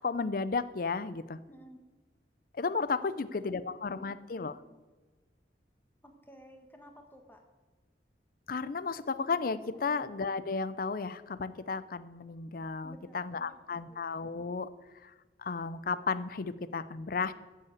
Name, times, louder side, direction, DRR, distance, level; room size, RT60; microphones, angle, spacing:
voice 1, 0.0-1.4 2.5-4.6 8.5-14.7 15.0-15.1 15.4-17.3, left 4 dB, 50° left, 15 dB, 0.5 m, -33 dB
voice 2, 1.5-1.8 3.0-4.8 6.0-7.4 9.7-10.1 12.8-14.0, right 1 dB, 10° left, 3 dB, 1.5 m, -55 dB
13.5 x 5.7 x 8.1 m, 1.3 s
head